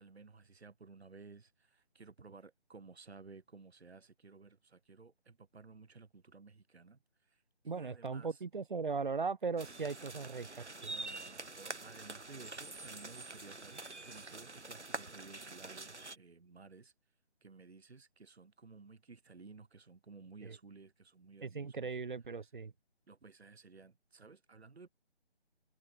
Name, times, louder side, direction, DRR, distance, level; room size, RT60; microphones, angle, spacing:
voice 1, 0.0-8.4 10.9-16.9 17.4-22.0 23.1-24.9, right 4 dB, 70° right, 1.6 m, -56 dB
voice 2, 7.7-10.9 20.4-20.6 21.4-22.7, right 4 dB, 45° right, 0.6 m, -38 dB
sound 1, 9.6-16.2, right 3 dB, 85° right, 2.5 m, -46 dB
figure-of-eight pair, 160°, 34 cm